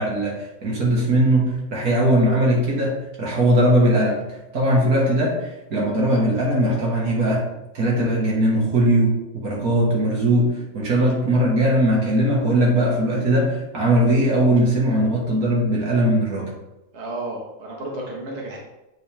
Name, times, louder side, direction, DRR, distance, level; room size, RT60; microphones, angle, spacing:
voice 1, 0.0-4.2 4.5-7.4 7.7-16.5, right 1 dB, 80° right, -3 dB, 2.1 m, -20 dB
voice 2, 16.9-18.6, right 1 dB, 50° right, -3 dB, 1.6 m, -32 dB
8.2 x 4.0 x 3.4 m, 0.94 s
omnidirectional pair, 1.5 m